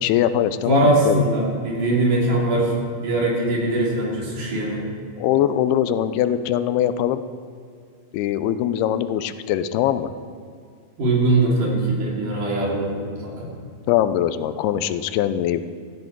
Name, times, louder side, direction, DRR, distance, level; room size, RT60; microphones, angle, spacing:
voice 1, 0.0-1.2 5.2-7.2 8.1-10.1 13.9-15.6, left 11 dB, 90° left, 12 dB, 2.6 m, -22 dB
voice 2, 0.6-4.9 11.0-13.5, right 2 dB, 55° right, -3 dB, 4.2 m, -21 dB
16.0 x 14.5 x 4.6 m, 2.2 s
omnidirectional pair, 4.4 m